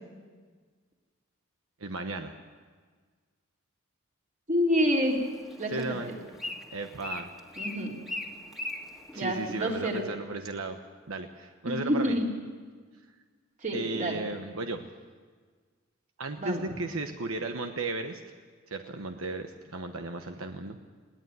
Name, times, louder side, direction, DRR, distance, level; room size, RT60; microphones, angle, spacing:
voice 1, 1.8-2.4 5.7-6.1 6.7-7.3 9.1-10.8 11.1-12.2 13.7-14.9 16.2-18.2 18.7-20.8, right 3 dB, 85° right, 6 dB, 1.1 m, -35 dB
voice 2, 4.5-5.2 5.5-6.2 7.6-8.0 9.2-10.0 11.7-12.3 13.6-14.2 16.4-16.6, equal, 40° right, -1 dB, 3.7 m, -28 dB
Bird, 4.9-10.0, left 2 dB, ahead, 1.8 m, -41 dB
21.0 x 17.5 x 9.5 m, 1.5 s
head